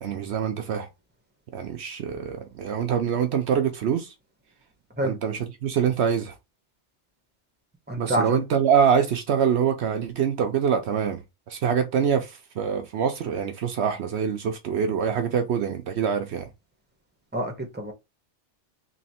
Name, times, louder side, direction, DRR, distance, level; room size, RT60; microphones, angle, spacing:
voice 1, 0.0-0.9 1.5-4.1 5.0-6.3 8.0-16.5, right 7 dB, 70° right, 0.9 m, -25 dB
voice 2, 7.9-8.4 17.3-17.9, right 1 dB, 10° right, 1.0 m, -27 dB
3.2 x 3.1 x 4.1 m
omnidirectional pair, 1.2 m